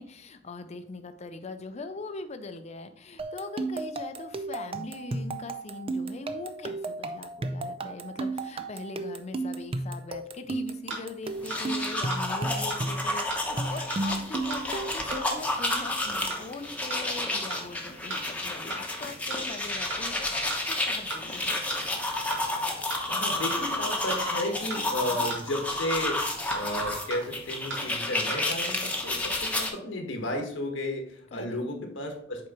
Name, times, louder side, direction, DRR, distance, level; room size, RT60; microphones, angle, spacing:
voice 1, 0.0-21.9 25.1-25.3 31.3-31.6, left 3 dB, 35° left, 8 dB, 0.5 m, -41 dB
sound 1, 3.2-15.5, right 2 dB, 30° right, 0.4 m, -34 dB
sound 2, 10.9-11.0 11.5-11.6 12.1-12.2 12.7-12.8 13.3-13.4 13.9-14.0 14.5-14.6 15.1-15.2 15.7-15.8 16.3-16.4 16.9-17.0 17.5-17.6 18.1-18.2 18.7-18.8 19.3-19.4 19.9-20.0 20.5-20.6 21.1-21.2 21.7-21.8 22.3-22.4 22.9-23.0 23.5-23.6 24.1-24.2 24.7-24.8 25.3-25.4 25.9-26.0 26.5-26.6 27.1-27.2 27.7-27.8 28.3-28.4, right 2 dB, 85° right, 2.1 m, -34 dB
sound 3, 11.3-29.7, left 2 dB, 10° left, 0.9 m, -31 dB
voice 2, 23.1-26.2 26.5-32.5, left 1 dB, 80° left, 3 dB, 1.3 m, -33 dB
7.5 x 4.6 x 3.0 m, 0.63 s
head